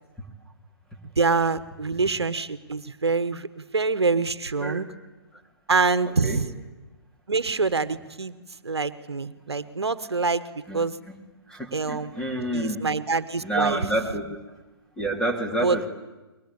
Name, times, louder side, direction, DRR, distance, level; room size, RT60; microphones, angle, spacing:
voice 1, 1.2-4.9 5.7-6.5 7.3-8.3 8.6-11.0 11.7-12.1 12.5-13.8 15.6-15.8, right 4 dB, 80° right, 14 dB, 1.4 m, -25 dB
voice 2, 11.5-12.8 13.1-14.4 15.0-15.9, right 1 dB, 5° left, 3 dB, 3.7 m, -28 dB
29.5 x 23.0 x 8.8 m, 1.1 s
figure-of-eight pair, 130°, 14 cm